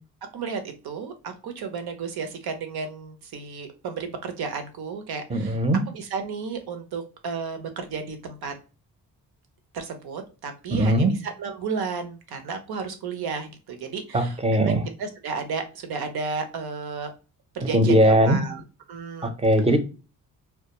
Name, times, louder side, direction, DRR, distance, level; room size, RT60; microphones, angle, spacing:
voice 1, 0.3-5.6 5.9-8.5 9.7-17.1 17.5-18.6 18.9-19.3, right 5 dB, 65° right, 7 dB, 0.8 m, -33 dB
voice 2, 5.3-5.8 10.7-11.1 14.1-14.8 17.6-18.4 19.2-19.8, right 1 dB, 15° right, 8 dB, 0.6 m, -20 dB
2.2 x 2.1 x 2.9 m, 0.33 s
supercardioid pair, 60°, 40 cm